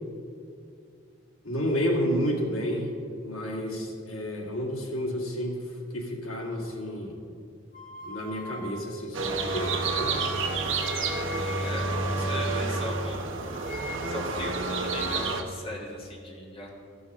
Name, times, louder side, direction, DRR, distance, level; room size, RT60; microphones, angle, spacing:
voice 1, 1.4-2.9 3.2-5.6 5.9-7.2 8.0-10.1, equal, 90° left, 0 dB, 1.9 m, -30 dB
sound 1, 7.7-13.0 13.3-14.4, left 1 dB, 40° left, 0.8 m, -42 dB
sound 2, 9.1-15.4, right 3 dB, 70° right, 0.9 m, -29 dB
voice 2, 11.3-13.2 14.1-16.7, left 1 dB, 25° left, -1 dB, 1.5 m, -38 dB
13.5 x 6.2 x 6.1 m, 2.5 s
head